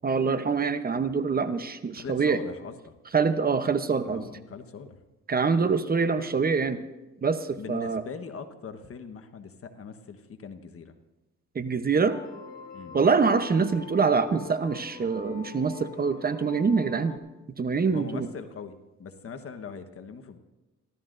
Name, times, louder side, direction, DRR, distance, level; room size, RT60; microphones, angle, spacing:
voice 1, 0.0-2.4 3.1-4.3 5.3-6.8 7.2-8.0 11.5-12.2 12.9-17.2 17.6-18.3, right 5 dB, 30° right, 10 dB, 0.9 m, -25 dB
voice 2, 1.9-3.1 4.1-5.0 7.6-10.9 12.7-13.0 17.9-20.4, left 5 dB, 50° left, 7 dB, 1.2 m, -41 dB
sound 1, 12.1-17.2, left 5 dB, 30° left, 2.6 m, -44 dB
29.5 x 13.0 x 2.6 m, 1.1 s
cardioid pair, 90°, 30 cm